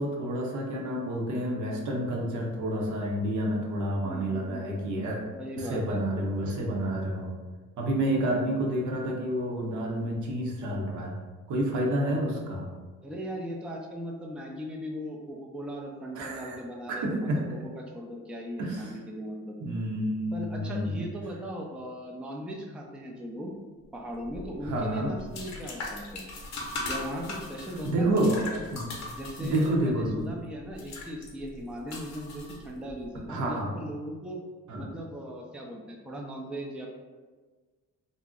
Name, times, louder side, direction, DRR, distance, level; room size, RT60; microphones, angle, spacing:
voice 1, 0.0-5.2 5.6-7.3 7.8-11.2 11.5-12.7 16.1-16.6 16.9-17.4 18.6-18.9 19.6-21.0 24.6-25.1 27.8-28.4 28.7-28.9 29.4-30.2 33.3-33.7 34.7-34.8, right 1 dB, 70° right, -1 dB, 0.7 m, -29 dB
voice 2, 4.0-4.7 5.3-6.0 13.0-19.6 20.3-23.5 23.9-26.3 26.9-28.2 28.5-28.6 29.2-34.4 34.8-36.9, equal, 5° right, 0 dB, 0.3 m, -38 dB
sound 1, 24.2-33.0, left 2 dB, 65° left, 0.7 m, -40 dB
2.5 x 2.0 x 3.6 m, 1.4 s
cardioid pair, 90°, 30 cm